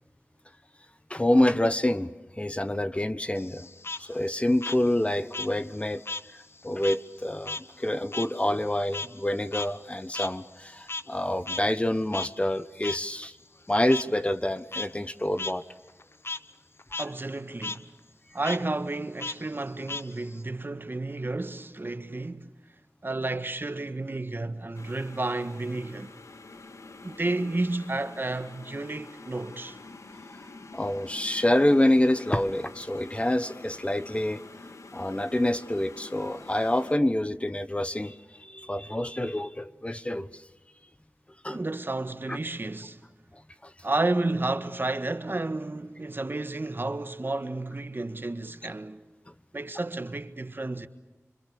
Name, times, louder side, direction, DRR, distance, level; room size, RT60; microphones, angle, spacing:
voice 1, 1.1-2.1 2.4-3.7 4.0-6.0 6.3-13.4 13.7-15.6 30.7-34.4 34.9-40.4 41.4-41.6 42.3-42.4 43.6-43.7, left 1 dB, 25° left, 1.1 m, -27 dB
Frog, 3.4-6.3 6.6-11.2 11.5-11.6 12.1-12.3 12.8-13.0 13.9-14.0 14.6-14.9 15.4-15.5 15.9-16.4 16.8-17.1 17.4-17.8 18.4-18.6 19.2-20.4, left 3 dB, 50° left, 0.9 m, -36 dB
voice 2, 17.0-17.9 18.3-22.5 23.0-26.1 27.0-29.8 41.5-43.0 43.8-49.0 49.5-50.9, right 2 dB, 40° right, 1.4 m, -31 dB
sound 1, 24.7-36.9, left 3 dB, 75° left, 1.7 m, -47 dB
27.5 x 25.5 x 6.7 m
wide cardioid pair, 60°, 5 cm